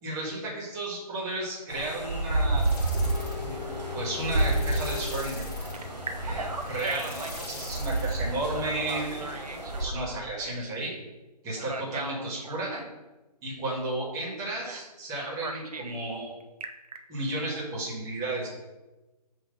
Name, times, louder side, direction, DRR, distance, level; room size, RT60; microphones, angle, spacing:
voice 1, 0.0-2.7 3.4-5.4 6.2-9.4 9.8-10.9 11.4-12.8 13.4-16.3 17.1-18.5, right 2 dB, 15° right, -5 dB, 1.7 m, -33 dB
sound 1, 1.7-9.8, right 2 dB, 90° right, 2.0 m, -30 dB
sound 2, 2.6-8.9, left 3 dB, 30° left, 1.1 m, -42 dB
Telephone, 2.9-5.2 5.7-7.5 8.5-10.7 11.6-12.9 14.6-14.9 15.2-16.0 16.4-17.0, right 1 dB, 65° right, 0.7 m, -38 dB
6.0 x 3.0 x 5.6 m, 1.1 s
figure-of-eight pair, 140°, 21 cm